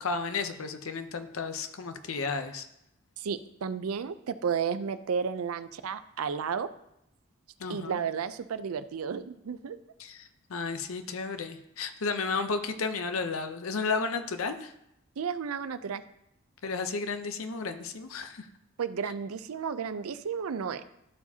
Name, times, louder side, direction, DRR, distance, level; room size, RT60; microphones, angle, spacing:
voice 1, 0.0-2.7 7.6-8.0 10.0-14.7 16.6-18.5, left 4 dB, 75° left, 9 dB, 0.6 m, -33 dB
voice 2, 3.2-6.7 7.7-9.8 15.2-16.0 18.8-20.8, right 6 dB, 85° right, 12 dB, 0.4 m, -32 dB
13.0 x 4.7 x 2.8 m, 0.80 s
head